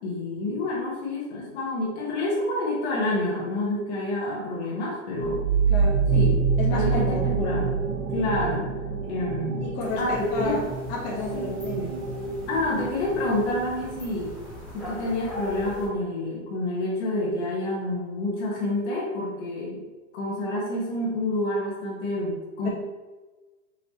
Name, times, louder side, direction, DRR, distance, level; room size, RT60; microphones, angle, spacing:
voice 1, 0.0-5.4 6.1-6.4 6.7-7.8 8.1-8.6 9.0-9.7 10.0-10.6 11.4-11.6 12.5-14.3 14.7-19.8 20.1-22.7, left 1 dB, 50° left, -4 dB, 1.3 m, -28 dB
sound 1, 5.2-14.5, right 5 dB, 45° right, 0.9 m, -27 dB
voice 2, 5.7-6.1 6.6-7.2 9.6-10.6 10.9-11.9, left 2 dB, 35° left, -6 dB, 1.3 m, -31 dB
sound 2, 9.8-15.9, left 1 dB, ahead, 0.8 m, -41 dB
5.6 x 2.9 x 3.0 m, 1.2 s
supercardioid pair, 155°, 41 cm